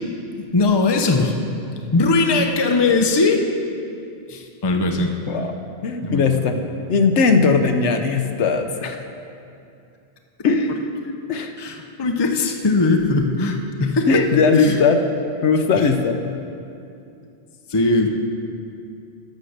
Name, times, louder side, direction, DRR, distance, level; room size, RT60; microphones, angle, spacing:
voice 1, 0.4-1.4 1.9-3.5 4.3-5.1 6.0-6.4 11.6-14.1 14.6-14.8 15.7-15.8 17.7-18.1, left 3 dB, 25° left, 4 dB, 0.7 m, -19 dB
voice 2, 5.8-6.6 6.9-9.0 10.4-10.8 11.3-11.5 14.1-15.0 15.4-16.3, left 4 dB, 75° left, 7 dB, 1.0 m, -18 dB
11.5 x 6.5 x 6.6 m, 2.6 s
omnidirectional pair, 1.2 m